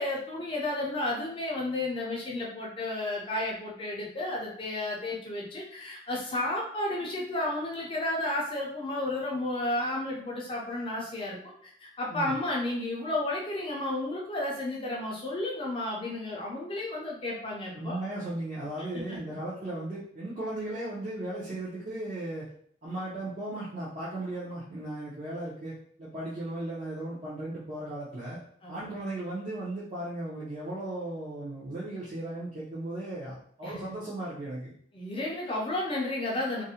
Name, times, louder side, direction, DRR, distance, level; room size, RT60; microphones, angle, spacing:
voice 1, 0.0-18.0 18.9-19.2 28.6-28.9 33.6-33.9 34.9-36.6, left 1 dB, 30° left, -3 dB, 0.4 m, -32 dB
voice 2, 17.7-22.5 22.8-25.7 26.0-28.4 28.7-34.7, right 1 dB, 40° right, -9 dB, 0.5 m, -36 dB
2.4 x 2.0 x 2.7 m, 0.63 s
head